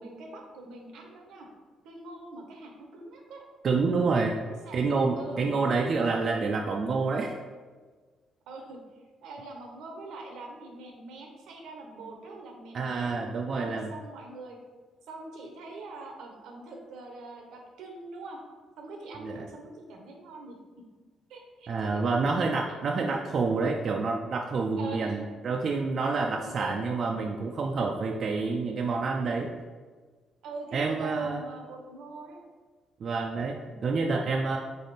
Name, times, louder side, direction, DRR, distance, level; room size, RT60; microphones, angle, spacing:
voice 1, 0.0-1.5 1.8-3.4 4.5-4.8 5.2-6.0 8.5-8.8 9.2-13.2 13.6-14.6 15.1-18.4 18.8-20.6 21.3-22.2 24.8-25.2 26.4-26.8 30.4-32.4, right 2 dB, 85° right, 1 dB, 0.8 m, -43 dB
voice 2, 3.6-4.3 4.7-7.3 12.7-13.9 19.2-19.5 21.7-29.5 30.7-31.4 33.0-33.6 33.8-34.6, right 4 dB, 55° right, 1 dB, 0.4 m, -28 dB
3.7 x 3.4 x 4.1 m, 1.4 s
cardioid pair, 90°, 0 cm